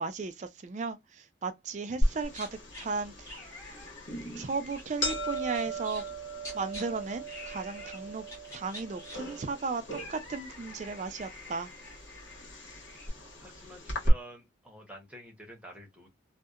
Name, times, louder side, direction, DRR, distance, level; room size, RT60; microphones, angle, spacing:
voice 1, 0.0-2.5 2.8-3.3 4.4-6.0 6.5-8.2 8.5-11.7, right 4 dB, 35° right, 0.3 m, -35 dB
sound 1, 2.0-14.1, right 1 dB, 80° left, 1.2 m, -37 dB
sound 2, 2.2-2.9 3.3-6.8 7.3-8.0 8.3-13.1, left 1 dB, 15° left, 1.3 m, -47 dB
voice 2, 13.4-16.1, equal, 5° right, 0.8 m, -49 dB
2.7 x 2.1 x 2.3 m
head